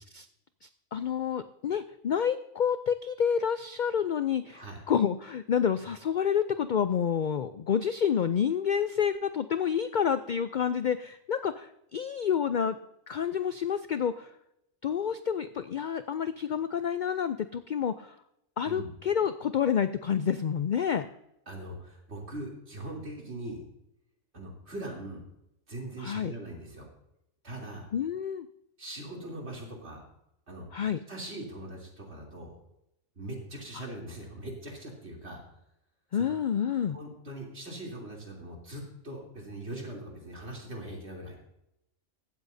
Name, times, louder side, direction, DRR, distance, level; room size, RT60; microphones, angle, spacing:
voice 1, 0.6-12.8 13.1-14.3 14.8-18.1 18.6-21.1 26.0-26.3 27.9-28.5 30.7-31.0 33.7-33.8 36.1-37.0, left 8 dB, 70° left, 11 dB, 0.4 m, -29 dB
voice 2, 21.5-23.6 24.3-25.2 25.7-26.9 27.4-27.9 28.8-30.0 30.5-30.7 31.1-32.5 33.1-35.4 36.1-36.2 36.9-41.4, right 1 dB, 55° right, -1 dB, 3.4 m, -41 dB
15.5 x 13.0 x 2.7 m, 0.83 s
omnidirectional pair, 1.4 m